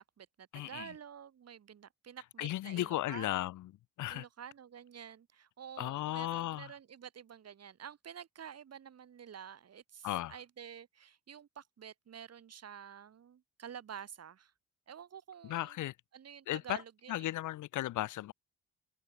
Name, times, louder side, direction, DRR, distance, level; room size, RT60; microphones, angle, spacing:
voice 1, 0.0-3.3 4.1-14.5 14.9-15.8 16.1-17.4, right 8 dB, 55° right, 7.0 m, -49 dB
voice 2, 0.5-0.9 2.4-3.7 4.0-4.2 5.8-6.7 10.0-10.3 15.4-15.9 16.5-16.8 17.1-18.3, left 15 dB, 80° left, 1.4 m, -35 dB
cardioid pair, 90°, 30 cm